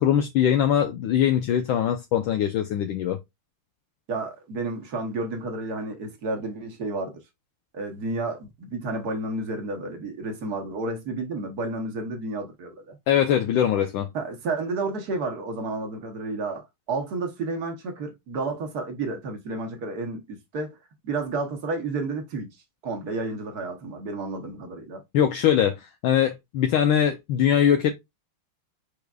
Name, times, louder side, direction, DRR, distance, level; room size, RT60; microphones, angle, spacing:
voice 1, 0.0-3.2 13.1-14.1 25.1-27.9, left 9 dB, 75° left, 1.3 m, -22 dB
voice 2, 4.1-7.2 7.7-13.0 14.1-20.8 21.0-22.5 22.8-25.0, right 3 dB, 55° right, 1.4 m, -31 dB
4.8 x 4.7 x 2.3 m
omnidirectional pair, 2.3 m